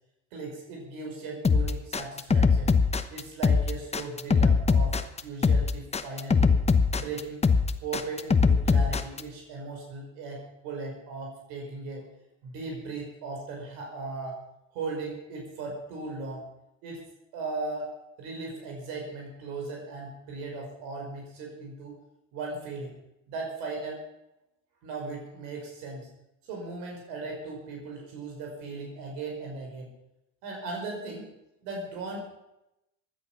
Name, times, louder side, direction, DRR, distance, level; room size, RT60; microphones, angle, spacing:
voice 1, 0.3-2.8 3.1-6.6 6.9-7.5 7.8-12.0 12.4-14.4 14.7-16.4 16.8-17.0 17.3-17.9 18.2-21.9 22.3-22.9 23.3-24.0 24.8-26.1 26.4-29.9 30.4-31.3 31.6-32.3, right 3 dB, 85° right, 0 dB, 5.2 m, -37 dB
sound 1, 1.4-9.2, left 5 dB, 20° left, 1.0 m, -22 dB
16.0 x 11.0 x 6.0 m, 0.87 s
cardioid pair, 110°, 34 cm